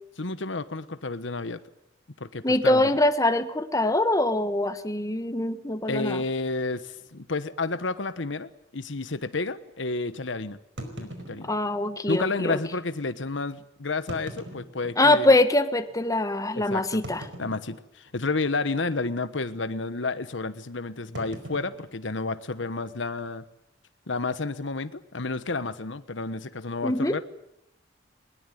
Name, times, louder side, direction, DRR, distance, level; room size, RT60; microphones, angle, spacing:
voice 1, 0.2-1.6 2.2-2.8 5.9-10.6 11.0-11.5 12.1-15.4 16.5-17.0 17.4-23.4 24.1-27.2, left 3 dB, 80° left, 13 dB, 1.2 m, -31 dB
voice 2, 2.4-6.2 11.4-12.6 15.0-17.2 26.8-27.2, left 1 dB, 20° left, 10 dB, 1.3 m, -23 dB
sound 1, 7.0-7.1 7.4-7.5 8.1-8.2 10.8-12.0 12.8-12.9 13.9-15.4 15.9-16.0 17.0-18.1 18.4-18.8 19.0-19.3 21.1-22.8, right 1 dB, 70° right, 4.9 m, -42 dB
21.0 x 20.5 x 9.4 m, 0.81 s
head